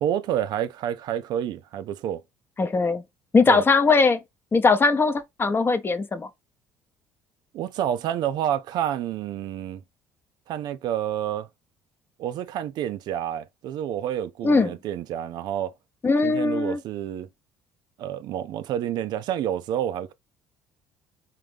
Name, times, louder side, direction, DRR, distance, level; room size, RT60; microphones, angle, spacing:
voice 1, 0.0-2.2 3.5-3.6 7.5-9.8 10.5-11.5 12.2-15.7 16.2-17.3 18.0-20.1, right 10 dB, 60° right, 0.4 m, -29 dB
voice 2, 2.6-3.0 3.3-4.2 4.5-6.3 14.4-14.7 16.0-16.8, left 4 dB, 30° left, 0.7 m, -20 dB
3.7 x 2.7 x 3.4 m
hypercardioid pair, 65°, 8 cm